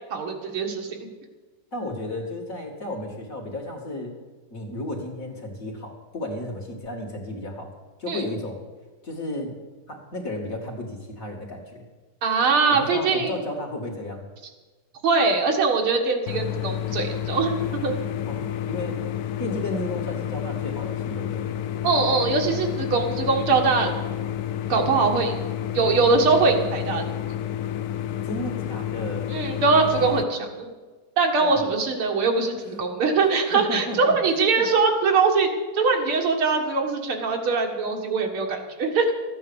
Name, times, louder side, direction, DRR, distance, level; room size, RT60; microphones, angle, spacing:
voice 1, 0.1-1.0 8.1-8.2 12.2-13.4 15.0-17.9 21.8-23.9 24.7-25.3 25.7-27.1 29.3-30.7 31.2-35.5 35.7-39.1, right 4 dB, 80° right, 2 dB, 2.5 m, -22 dB
voice 2, 1.7-4.1 4.5-7.7 8.0-8.6 9.0-9.6 9.9-11.8 12.7-14.3 18.3-19.0 19.4-21.5 28.2-29.3 31.4-31.7 33.3-34.7, left 1 dB, 40° left, 0 dB, 2.4 m, -33 dB
sound 1, 16.3-30.2, left 11 dB, 90° left, 0.8 m, -30 dB
14.0 x 9.5 x 7.0 m, 1.3 s
omnidirectional pair, 2.3 m